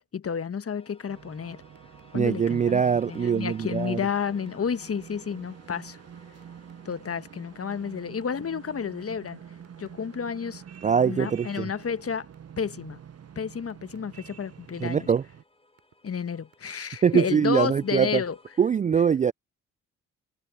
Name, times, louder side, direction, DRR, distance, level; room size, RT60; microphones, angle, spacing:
voice 1, 0.0-1.6 2.1-6.0 6.8-9.4 9.8-10.6 11.0-12.3 12.6-13.0 13.3-15.1 16.0-18.4, left 6 dB, 40° left, 1.3 m, -31 dB
sound 1, 0.8-18.8, left 2 dB, 15° left, 4.2 m, -58 dB
sound 2, 1.0-15.4, right 8 dB, 40° right, 0.9 m, -47 dB
sound 3, 1.5-2.1 2.4-2.6 2.9-3.5 3.8-4.0 4.5-4.6 4.9-5.3 6.4-7.1 7.7-8.6 9.0-10.2 10.7-12.0 12.3-12.8 13.2-14.9 15.5-16.2 16.5-17.0, right 9 dB, 60° right, 6.0 m, -60 dB
voice 2, 2.1-4.0 10.8-11.7 14.8-15.2 17.0-18.2 18.6-19.3, right 7 dB, 20° right, 0.3 m, -23 dB
hypercardioid pair, 45°, 38 cm